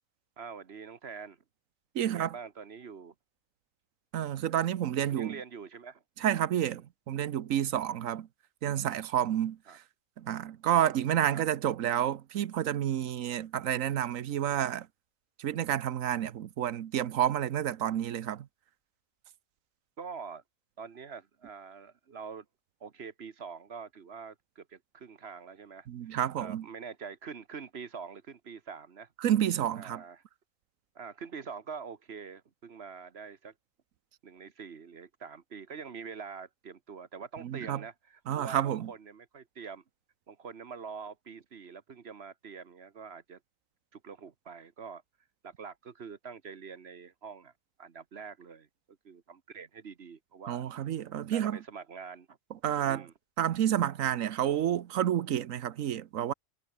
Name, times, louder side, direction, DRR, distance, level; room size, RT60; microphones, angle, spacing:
voice 1, 0.4-1.4 2.0-3.1 5.1-6.0 6.6-6.8 9.7-9.8 11.3-11.4 20.0-20.4 20.8-22.5 22.8-29.1 29.8-30.2 30.9-33.5 34.2-39.8 40.3-43.4 43.9-45.0 45.4-47.5 47.8-48.7 49.0-50.6 51.3-52.4 52.9-53.1, right 6 dB, 55° right, 1.4 m, -45 dB
voice 2, 1.9-2.3 4.1-5.4 6.2-8.3 8.6-9.8 10.2-14.9 15.4-18.5 25.9-26.7 29.2-30.0 37.4-37.8 38.3-38.9 50.5-51.6 52.6-53.1 53.4-56.3, right 10 dB, 85° right, 1.2 m, -30 dB
omnidirectional pair, 1.4 m